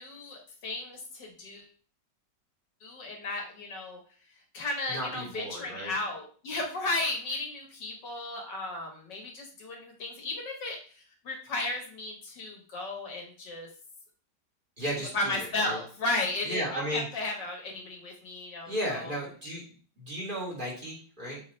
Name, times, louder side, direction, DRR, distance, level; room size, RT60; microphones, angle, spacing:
voice 1, 0.0-1.7 2.8-4.0 4.5-10.8 11.2-13.7 15.1-19.2, left 2 dB, 85° left, 1 dB, 2.3 m, -34 dB
voice 2, 4.9-6.0 14.8-15.8 16.4-17.2 18.7-19.7 20.0-21.4, equal, 30° right, -4 dB, 2.4 m, -35 dB
7.0 x 3.3 x 4.2 m, 0.42 s
omnidirectional pair, 1.8 m